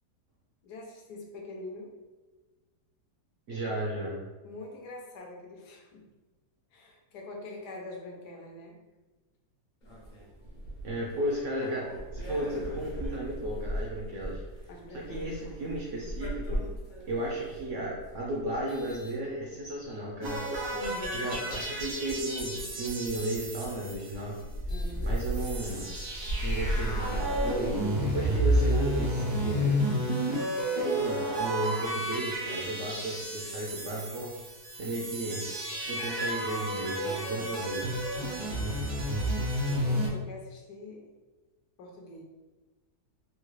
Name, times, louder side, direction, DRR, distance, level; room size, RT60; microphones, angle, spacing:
voice 1, 0.6-1.9 4.4-6.0 6.7-8.8 14.7-15.6 20.7-21.3 24.7-25.1 38.2-38.7 39.6-41.1 41.8-42.2, left 2 dB, 75° left, 0 dB, 1.2 m, -44 dB
voice 2, 3.5-4.2 10.8-14.4 14.9-16.6 17.1-20.4 21.1-24.4 25.0-25.9 26.4-27.7 28.0-29.7 30.8-34.3 34.8-35.4 35.9-37.9, right 1 dB, 65° right, -3 dB, 0.7 m, -34 dB
sound 1, 9.8-19.8 20.5-21.7 23.1-23.4 23.9-24.0 24.3-28.5, equal, 60° left, 0.5 m, -37 dB
sound 2, 20.2-24.6 24.9-25.0 25.1-40.1, right 1 dB, 90° right, 1.5 m, -31 dB
3.7 x 2.3 x 3.1 m, 1.2 s
omnidirectional pair, 1.8 m